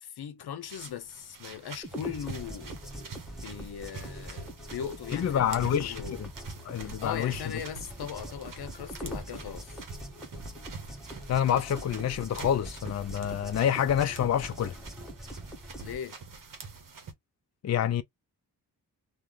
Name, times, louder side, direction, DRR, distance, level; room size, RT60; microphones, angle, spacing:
voice 1, 0.0-2.7 3.4-6.3 6.8-9.8 15.8-16.2, left 8 dB, 75° left, 0.7 m, -39 dB
sound 1, 0.6-17.1, right 4 dB, 55° right, 1.0 m, -46 dB
sound 2, 1.8-16.0, right 1 dB, ahead, 1.2 m, -43 dB
voice 2, 5.1-6.3 6.6-7.4 11.3-14.7 17.6-18.0, left 9 dB, 45° left, 0.4 m, -27 dB
3.0 x 2.2 x 3.7 m
cardioid pair, 85°, 38 cm